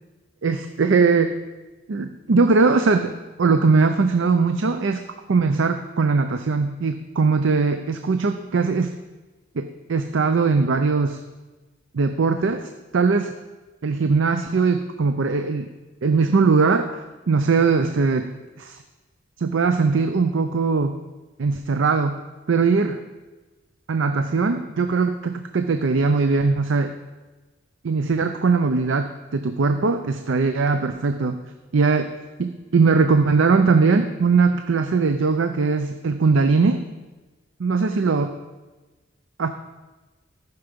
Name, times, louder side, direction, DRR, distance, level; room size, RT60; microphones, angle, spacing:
voice 1, 0.4-1.4 1.9-3.1 3.4-5.0 5.3-8.9 9.6-11.2 11.9-13.3 13.8-15.7 16.0-18.3 18.6-18.8 19.4-21.0 21.4-22.2 22.5-23.0 23.9-26.9 27.8-31.4 31.7-32.1 32.4-36.8 37.6-38.3 39.4-39.5, right 4 dB, 75° right, 8 dB, 0.5 m, -20 dB
14.0 x 5.8 x 5.2 m, 1.2 s
head